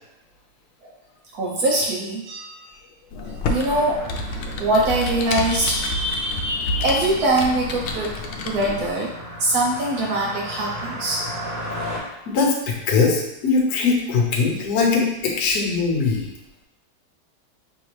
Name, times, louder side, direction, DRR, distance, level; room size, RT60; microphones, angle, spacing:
voice 1, 1.3-2.7 3.5-4.0 4.6-8.1 8.4-9.1 9.4-11.2, right 1 dB, 70° right, -4 dB, 0.9 m, -23 dB
Computer keyboard, 3.1-8.9, left 1 dB, 75° left, 1.2 m, -29 dB
sound 1, 3.7-12.0, equal, 45° right, 1.1 m, -36 dB
voice 2, 11.2-16.3, left 4 dB, 60° left, -1 dB, 1.2 m, -22 dB
5.9 x 2.7 x 3.1 m, 0.93 s
omnidirectional pair, 2.4 m